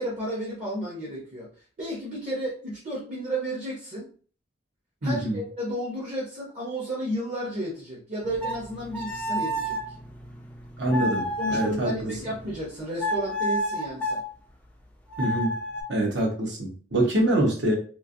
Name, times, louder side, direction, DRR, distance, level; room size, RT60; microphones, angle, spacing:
voice 1, 0.0-1.5 1.8-4.1 5.0-9.8 11.4-14.2, right 1 dB, 40° right, -5 dB, 0.9 m, -32 dB
voice 2, 5.0-5.4 10.8-12.1 15.2-15.6 15.9-17.8, right 1 dB, 70° right, 0 dB, 1.0 m, -25 dB
sound 1, 8.2-12.7 13.0-14.2 15.1-15.8, equal, 10° left, 0.4 m, -31 dB
3.1 x 2.5 x 2.5 m, 0.42 s
head